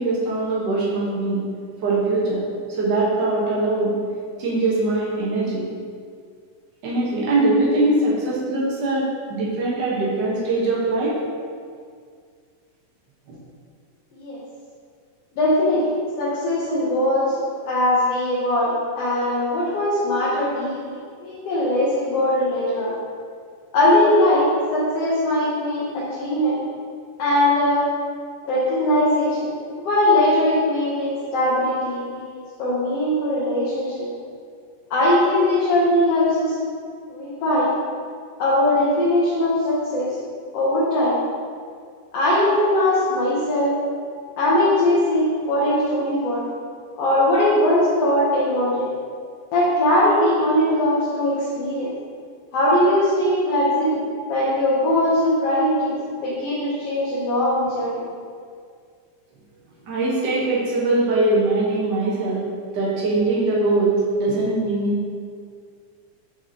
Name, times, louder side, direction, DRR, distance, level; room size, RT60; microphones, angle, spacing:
voice 1, 0.0-1.4 1.8-2.4 2.8-3.9 4.4-5.7 6.8-11.1 59.8-62.5 62.7-65.2, right 2 dB, 50° right, -6 dB, 1.4 m, -21 dB
voice 2, 15.4-15.9 16.2-22.9 23.7-26.6 27.2-27.9 28.4-29.5 29.8-34.1 34.9-36.5 37.1-37.7 38.4-40.1 40.5-41.2 42.1-43.8 44.4-46.5 47.0-48.9 49.5-51.9 52.5-54.0 54.3-58.0, left 1 dB, 60° left, -9 dB, 1.9 m, -20 dB
6.1 x 5.6 x 2.9 m, 2.1 s
omnidirectional pair, 3.6 m